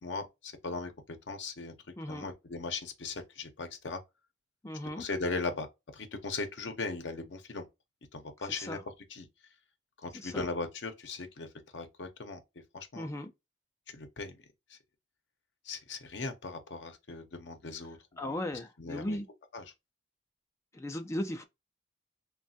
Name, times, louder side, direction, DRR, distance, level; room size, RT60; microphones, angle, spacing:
voice 1, 0.0-0.9 1.3-1.7 2.1-4.0 5.0-5.7 5.9-7.7 8.1-8.8 9.1-9.3 10.0-11.5 11.7-12.4 12.7-13.1 13.9-14.3 15.7-18.4 18.8-19.2 19.5-19.6, left 3 dB, 65° left, 0.6 m, -38 dB
voice 2, 4.6-5.0 8.5-8.8 10.1-10.5 12.9-13.3 18.2-19.3 20.7-21.4, left 1 dB, 15° left, 0.3 m, -37 dB
3.2 x 2.2 x 2.6 m
head